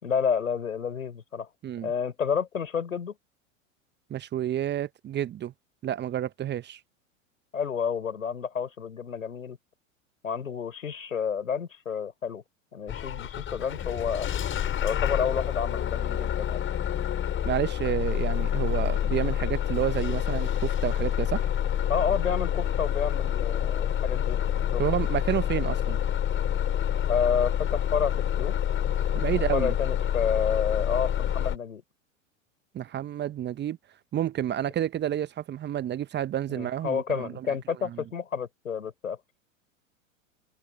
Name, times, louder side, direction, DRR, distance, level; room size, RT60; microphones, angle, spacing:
voice 1, 0.0-1.5 1.8-3.1 7.5-9.6 10.2-12.4 12.7-14.3 14.8-16.6 21.9-24.8 27.0-28.5 29.3-31.8 36.5-39.2, left 6 dB, 80° left, 4.7 m, -30 dB
voice 2, 4.1-5.5 5.8-6.8 17.4-21.5 24.8-26.0 29.1-29.7 32.7-33.8 34.1-37.5 37.8-38.0, right 11 dB, 25° right, 1.2 m, -30 dB
Bus / Engine starting, 12.9-31.6, left 10 dB, 30° left, 6.7 m, -27 dB
open air
figure-of-eight pair, 90°, 40 cm